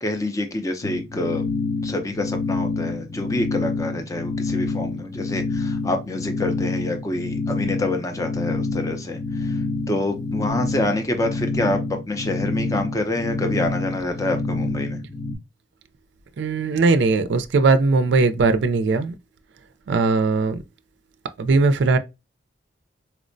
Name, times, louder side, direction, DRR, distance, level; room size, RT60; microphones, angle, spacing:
voice 1, 0.0-1.5 1.8-9.6 9.9-11.8 12.1-15.0, left 2 dB, 15° left, 0.4 m, -27 dB
sound 1, 0.8-15.3, left 3 dB, 65° left, 0.9 m, -27 dB
voice 2, 16.4-19.1 19.9-20.6 21.4-22.0, right 3 dB, 70° right, 0.4 m, -19 dB
4.3 x 2.0 x 2.5 m
head